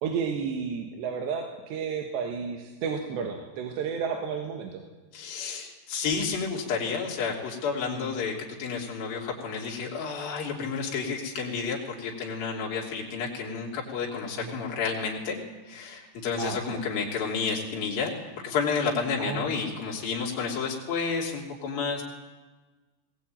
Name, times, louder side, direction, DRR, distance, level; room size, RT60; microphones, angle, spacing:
voice 1, 0.0-4.8 7.9-8.2 14.4-14.6 16.4-16.8 19.2-19.5, right 6 dB, 80° right, 4 dB, 3.9 m, -32 dB
voice 2, 5.1-8.3 8.6-15.4 15.7-18.1 18.4-22.0, left 5 dB, 60° left, -2 dB, 4.9 m, -30 dB
20.0 x 20.0 x 9.2 m, 1.3 s
omnidirectional pair, 5.0 m